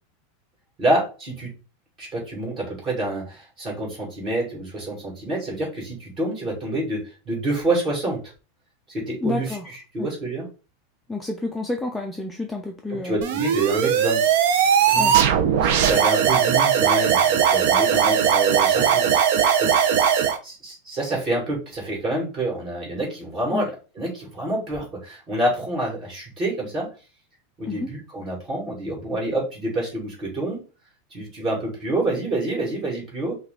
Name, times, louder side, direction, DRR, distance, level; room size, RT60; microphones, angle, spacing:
voice 1, 0.8-1.5 2.0-8.2 8.9-9.5 9.9-10.5 13.0-14.2 14.9-15.3 15.6-19.1 19.6-20.0 20.4-23.7 24.0-26.9 27.6-30.6 31.1-33.4, right 2 dB, 25° right, -2 dB, 2.5 m, -27 dB
voice 2, 9.2-9.7 10.0-10.1 11.1-13.2 15.0-15.2 23.5-23.7 27.6-27.9, left 3 dB, 5° left, 1 dB, 0.4 m, -29 dB
sound 1, 13.2-20.4, right 8 dB, 55° right, 0.6 m, -19 dB
5.7 x 2.4 x 3.8 m, 0.34 s
supercardioid pair, 165°, 0 cm